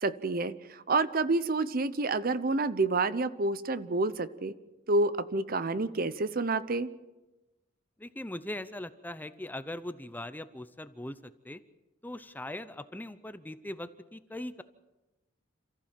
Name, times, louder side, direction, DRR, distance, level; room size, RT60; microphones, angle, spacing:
voice 1, 0.0-4.5 4.9-6.9, right 3 dB, 50° right, 15 dB, 0.8 m, -29 dB
voice 2, 8.0-11.6 12.0-14.6, left 1 dB, 10° left, 13 dB, 0.7 m, -40 dB
28.0 x 14.5 x 7.5 m, 1.1 s
head